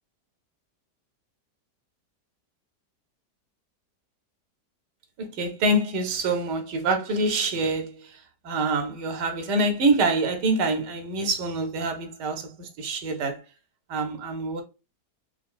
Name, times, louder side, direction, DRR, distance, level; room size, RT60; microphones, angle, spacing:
voice 1, 5.2-8.2 8.4-13.4 13.9-14.6, right 2 dB, 80° right, 1.3 m, -26 dB
3.4 x 2.6 x 2.3 m
omnidirectional pair, 1.8 m